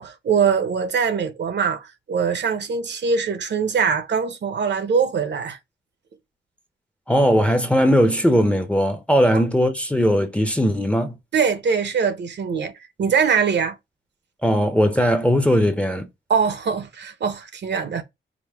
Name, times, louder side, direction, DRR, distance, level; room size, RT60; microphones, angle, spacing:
voice 1, 0.0-5.6 9.3-9.4 11.3-12.7 13.0-13.8 16.3-18.0, right 6 dB, 60° right, 0.6 m, -22 dB
voice 2, 7.1-11.2 14.4-16.1, equal, 5° left, 0.5 m, -19 dB
5.0 x 2.0 x 3.3 m
wide cardioid pair, 145°, 21 cm